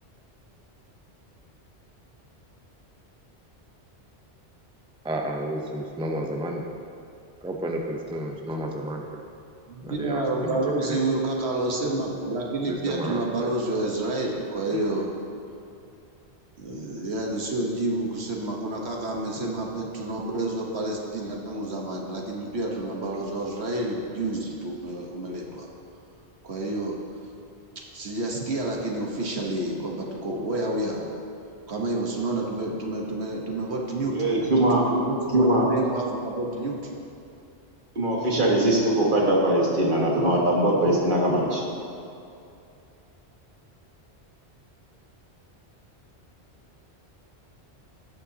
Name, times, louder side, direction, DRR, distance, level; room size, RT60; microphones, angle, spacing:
voice 1, 5.0-6.7 7.4-9.2 9.8-11.0 12.6-13.5 14.7-14.8, right 1 dB, 5° right, 1 dB, 0.5 m, -32 dB
voice 2, 9.7-15.1 16.6-25.7 26.4-27.0 27.9-31.0 31.7-36.9, right 2 dB, 75° right, -1 dB, 1.4 m, -29 dB
voice 3, 34.1-34.8 35.3-35.7 38.0-41.6, right 1 dB, 50° right, -3 dB, 1.6 m, -21 dB
16.5 x 6.9 x 2.8 m, 2.6 s
omnidirectional pair, 1.1 m